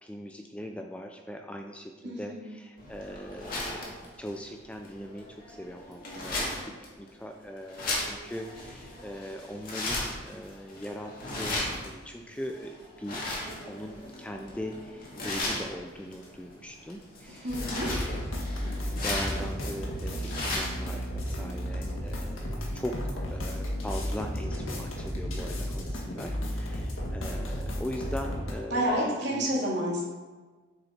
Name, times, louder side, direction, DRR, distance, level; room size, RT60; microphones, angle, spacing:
voice 1, 0.0-13.3 13.7-29.5, equal, 5° left, 3 dB, 0.4 m, -40 dB
voice 2, 2.0-2.5 17.3-17.9 28.7-30.0, equal, 55° right, -5 dB, 2.6 m, -29 dB
sound 1, 2.8-20.9, left 2 dB, 45° left, 2.1 m, -37 dB
sound 2, 17.5-28.5, equal, 80° left, 1.7 m, -33 dB
7.1 x 6.6 x 4.3 m, 1.3 s
head